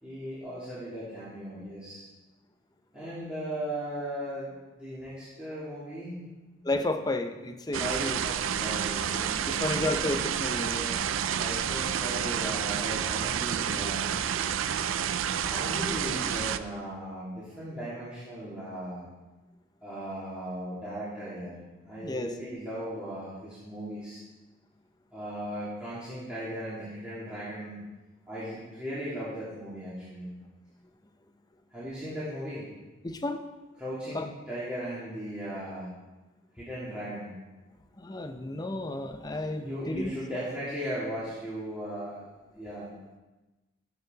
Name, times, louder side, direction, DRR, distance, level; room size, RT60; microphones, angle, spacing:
voice 1, 0.0-2.0 2.9-4.5 4.7-6.2 7.7-10.2 11.4-14.6 15.4-19.1 19.8-24.2 25.1-27.8 28.3-30.3 31.7-32.7 33.8-35.9 36.5-37.3 39.6-42.2 42.6-42.9, equal, 5° right, -12 dB, 2.8 m, -37 dB
voice 2, 6.7-8.2 9.5-11.0 22.0-22.3 33.0-33.4 34.1-34.2 38.0-40.1, left 2 dB, 20° left, 6 dB, 0.6 m, -32 dB
sound 1, 7.7-16.6, right 8 dB, 80° right, 0.4 m, -29 dB
13.5 x 6.9 x 4.0 m, 1.1 s
head